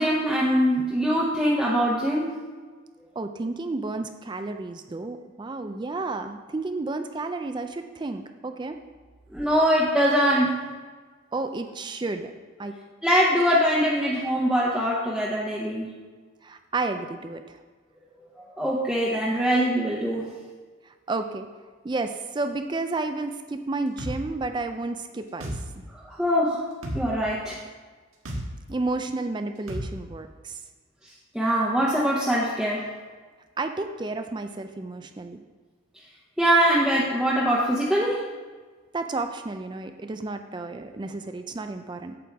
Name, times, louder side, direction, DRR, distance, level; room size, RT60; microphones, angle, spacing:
voice 1, 0.0-2.3 9.3-10.6 13.0-15.9 18.6-20.3 26.0-26.6 26.9-27.6 31.3-32.8 36.4-38.2, equal, ahead, -6 dB, 0.8 m, -22 dB
voice 2, 3.2-8.8 11.3-12.3 12.6-12.8 16.4-17.4 21.1-21.5 21.8-25.6 28.7-30.6 33.6-35.4 38.9-42.1, right 3 dB, 20° right, 7 dB, 0.3 m, -31 dB
sound 1, 24.0-24.2 25.4-25.6 26.8-27.0 28.3-28.4 29.7-29.9, equal, 90° right, 1.6 m, -31 dB
8.6 x 7.6 x 3.5 m, 1.5 s
head